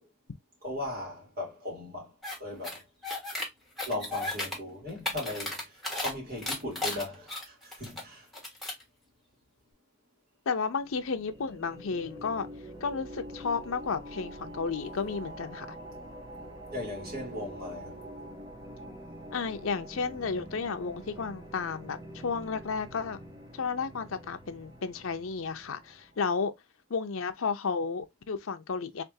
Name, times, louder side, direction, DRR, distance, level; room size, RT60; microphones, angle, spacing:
voice 1, 0.6-2.8 3.9-5.7 5.9-8.2 16.7-18.0, left 1 dB, 50° right, 2.8 m, -38 dB
sound 1, 2.2-2.4 2.6-3.5 3.8-4.6 4.9-6.1 6.4-8.0 8.3-8.8, left 2 dB, ahead, 1.6 m, -34 dB
voice 2, 10.5-12.5 12.8-15.7 19.3-23.2 23.5-26.5 26.9-29.0, left 5 dB, 80° left, 0.6 m, -32 dB
sound 2, 10.8-26.2, right 1 dB, 20° right, 0.9 m, -45 dB
3.9 x 3.4 x 2.7 m
head